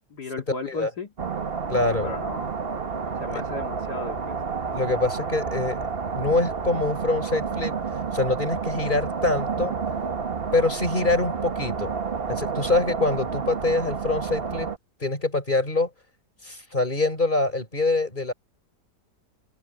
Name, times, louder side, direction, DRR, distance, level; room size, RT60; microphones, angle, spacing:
voice 1, 0.1-1.1 1.8-2.5 3.2-4.4, left 4 dB, 70° left, 2.9 m, -35 dB
sound 1, 1.2-14.8, right 5 dB, 35° right, 1.4 m, -30 dB
voice 2, 1.7-2.1 3.3-3.4 4.7-5.9 6.1-7.7 8.1-9.7 10.5-11.9 12.3-14.7 15.0-15.9 16.4-18.3, left 2 dB, 25° left, 6.2 m, -25 dB
omnidirectional pair, 1.8 m